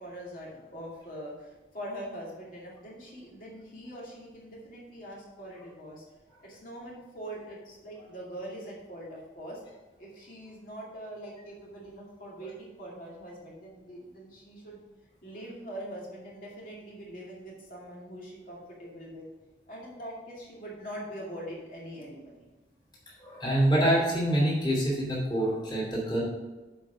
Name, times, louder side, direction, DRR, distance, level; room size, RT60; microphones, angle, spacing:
voice 1, 0.0-6.0 6.4-9.6 10.0-14.8 15.2-19.3 19.7-22.5, equal, 45° left, -5 dB, 2.4 m, -43 dB
voice 2, 23.2-26.2, right 1 dB, 25° left, -5 dB, 2.8 m, -26 dB
7.6 x 5.1 x 5.7 m, 1.2 s
head